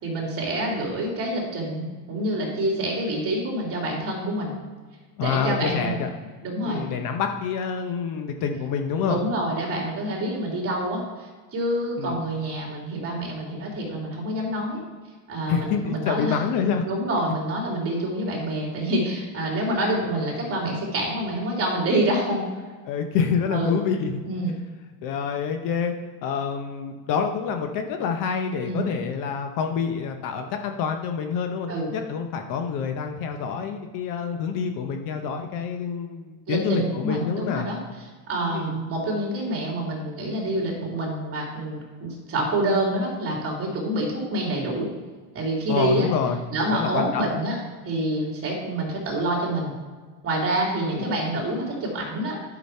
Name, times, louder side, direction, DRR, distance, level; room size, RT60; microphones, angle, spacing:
voice 1, 0.0-4.5 5.2-6.0 6.4-6.8 9.0-14.8 15.3-16.3 16.8-22.4 23.5-23.7 24.2-24.6 28.6-28.9 31.7-31.9 36.5-37.8 38.3-44.9 45.3-46.1 46.5-47.6 47.8-49.7 50.2-52.4, right 1 dB, 30° right, -2 dB, 2.9 m, -27 dB
voice 2, 5.2-6.1 6.6-9.2 12.0-12.2 15.5-16.8 22.9-24.2 25.0-25.9 26.2-37.7 38.5-38.7 45.7-46.4 46.7-47.2 50.9-51.1, left 6 dB, 50° left, 5 dB, 0.9 m, -27 dB
10.5 x 6.2 x 4.4 m, 1.4 s
cardioid pair, 145°, 44 cm